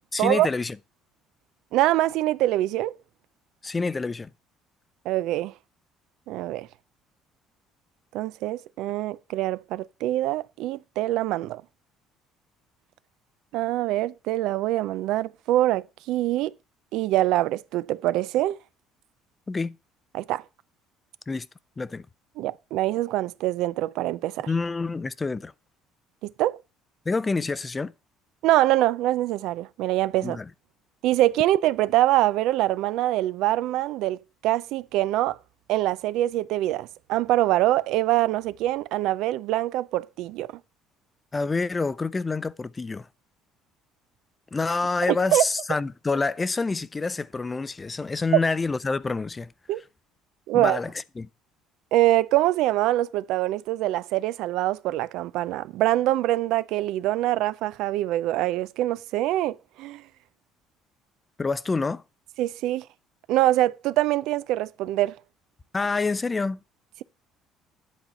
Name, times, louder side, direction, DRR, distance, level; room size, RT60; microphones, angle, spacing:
voice 1, 0.1-0.8 3.6-4.3 19.5-19.8 21.3-21.5 21.8-22.0 24.5-25.5 27.1-27.9 30.2-30.5 41.3-43.1 44.5-49.5 50.5-51.3 61.4-62.0 65.7-66.6, left 3 dB, 15° left, 0.4 m, -27 dB
voice 2, 1.7-3.0 5.1-5.5 6.3-6.7 8.1-11.6 13.5-16.5 16.9-18.6 20.1-20.4 22.4-24.5 26.2-26.6 28.4-30.4 31.0-34.2 34.4-35.4 35.7-40.5 45.3-45.4 49.7-49.8 50.5-50.8 51.9-60.0 62.4-62.8 63.3-65.2, right 15 dB, 75° right, 0.4 m, -24 dB
10.5 x 4.2 x 5.6 m
cardioid pair, 140°, 0 cm